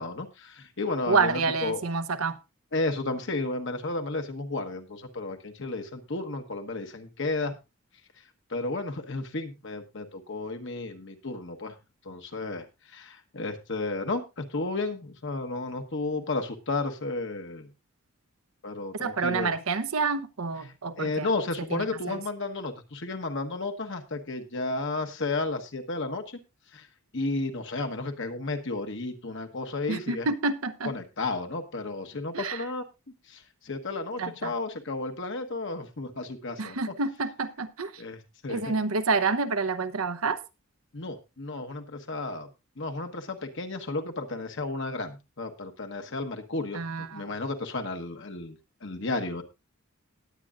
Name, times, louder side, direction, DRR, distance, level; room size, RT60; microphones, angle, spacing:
voice 1, 0.0-1.8 2.7-7.6 8.5-11.7 12.0-17.7 18.6-19.5 21.0-26.4 26.7-26.9 27.1-30.3 30.8-32.8 33.3-36.9 38.0-38.7 40.9-42.5 42.8-49.4, left 3 dB, 60° left, 5 dB, 1.3 m, -33 dB
voice 2, 1.1-2.4 19.0-21.3 21.7-22.2 29.9-30.9 32.3-32.6 34.2-34.5 36.6-37.9 38.5-40.4 46.7-47.3, right 4 dB, 80° right, 12 dB, 0.8 m, -28 dB
19.0 x 8.5 x 2.5 m, 0.25 s
head